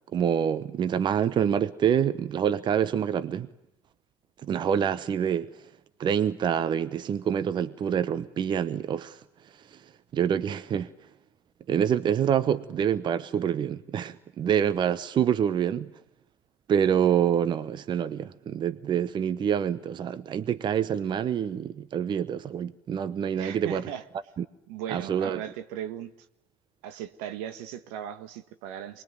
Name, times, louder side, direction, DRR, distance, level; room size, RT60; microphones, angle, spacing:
voice 1, 0.1-3.5 4.4-5.5 6.0-9.2 9.7-9.8 10.1-10.9 11.7-15.9 16.7-23.8 24.4-24.5 24.9-25.4, right 8 dB, 45° right, 1.0 m, -26 dB
voice 2, 23.3-24.0 24.7-26.1 26.8-29.0, right 10 dB, 75° right, 1.5 m, -37 dB
24.5 x 21.5 x 9.4 m
supercardioid pair, 80°, 11 cm